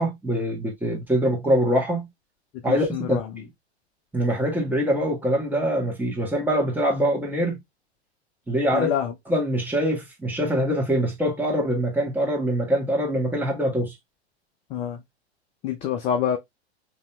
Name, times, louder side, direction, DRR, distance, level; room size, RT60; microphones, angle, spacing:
voice 1, 0.0-2.1 2.6-3.5 4.1-7.6 8.5-8.9 9.3-13.9, equal, 5° right, 1.4 m, -24 dB
voice 2, 2.7-3.3 8.7-9.1 14.7-15.0 15.6-16.4, left 9 dB, 20° left, 0.3 m, -26 dB
5.3 x 2.8 x 2.3 m
hypercardioid pair, 105°, 34 cm